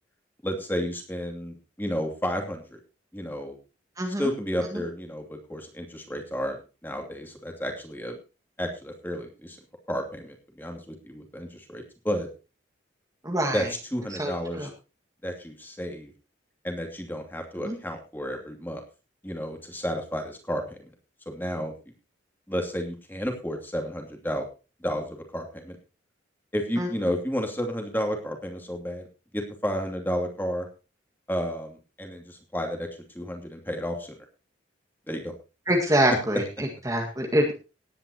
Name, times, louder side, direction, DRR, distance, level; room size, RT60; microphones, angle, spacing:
voice 1, 0.4-2.8 3.1-3.6 4.2-8.2 8.6-9.6 9.9-12.3 13.5-13.7 13.9-14.7 15.2-16.1 16.6-18.8 19.2-20.8 21.3-21.7 22.5-24.5 24.8-25.8 26.5-29.0 29.3-30.7 31.3-32.9 33.1-34.2 35.1-35.3, equal, 10° left, 3 dB, 2.7 m, -32 dB
voice 2, 4.0-4.3 4.7-4.8 13.2-13.7 14.2-14.7 17.6-17.8 26.8-26.9 35.7-37.5, equal, 20° right, 1 dB, 1.9 m, -25 dB
18.5 x 10.0 x 3.0 m, 0.32 s
head